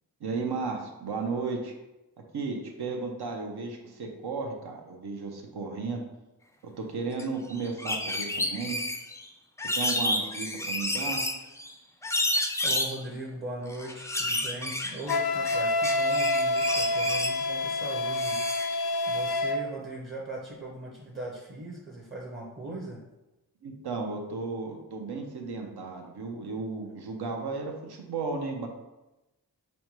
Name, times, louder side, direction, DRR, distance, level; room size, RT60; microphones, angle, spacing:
voice 1, 0.2-1.7 2.3-6.0 6.8-8.8 9.7-11.2 22.6-22.8 23.6-28.7, right 4 dB, 80° right, 2 dB, 0.8 m, -34 dB
sound 1, 7.2-7.3 7.5-9.2 9.6-11.7 12.0-13.0 13.7-15.6 15.8-17.4 18.1-18.8, left 1 dB, 10° left, 0.3 m, -30 dB
voice 2, 12.6-18.4 18.7-23.0, right 2 dB, 30° right, -3 dB, 0.7 m, -39 dB
Wind instrument woodwind instrument, 15.1-19.6, left 2 dB, 75° left, 0.5 m, -27 dB
5.2 x 2.2 x 3.0 m, 0.99 s
wide cardioid pair, 80°, 39 cm